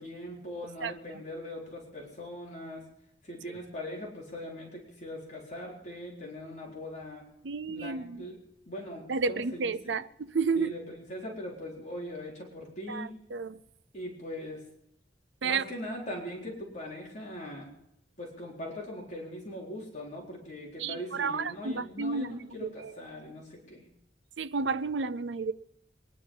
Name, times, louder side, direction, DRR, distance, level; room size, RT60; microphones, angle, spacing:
voice 1, 0.0-2.8 3.2-7.3 7.7-8.4 8.7-10.0 10.6-13.2 13.9-14.7 15.4-17.7 18.2-23.8, left 1 dB, 45° left, 4.2 m, -41 dB
voice 2, 7.4-8.2 9.1-10.7 12.9-13.6 15.4-15.6 20.8-22.9 24.4-25.5, right 4 dB, 80° right, 0.6 m, -31 dB
22.5 x 11.0 x 5.5 m
head